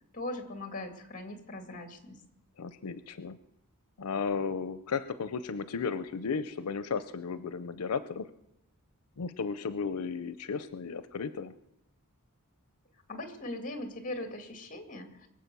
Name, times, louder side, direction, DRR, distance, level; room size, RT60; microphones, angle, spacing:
voice 1, 0.1-2.2 13.1-15.3, left 2 dB, 35° left, 7 dB, 2.3 m, -40 dB
voice 2, 2.6-3.4 4.0-8.3 9.2-11.5, left 5 dB, 90° left, 14 dB, 0.6 m, -34 dB
23.0 x 7.8 x 6.8 m, 0.82 s
head